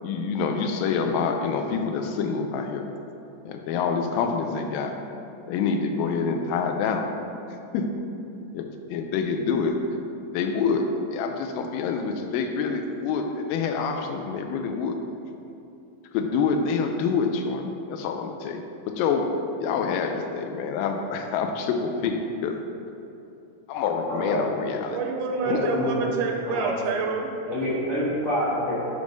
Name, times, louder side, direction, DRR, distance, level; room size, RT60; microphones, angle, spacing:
voice 1, 0.0-2.9 3.5-5.0 5.5-7.1 7.7-8.0 8.5-9.8 10.3-15.0 16.1-19.3 19.6-22.6 23.7-25.0 25.5-25.7, left 5 dB, 85° left, 5 dB, 2.2 m, -27 dB
voice 2, 24.1-24.4 25.4-26.0 26.4-26.7 27.4-28.8, left 1 dB, 65° left, -11 dB, 0.8 m, -27 dB
voice 3, 24.9-27.3, right 4 dB, 80° right, 2 dB, 2.0 m, -27 dB
6.9 x 3.2 x 5.1 m, 2.7 s
omnidirectional pair, 3.9 m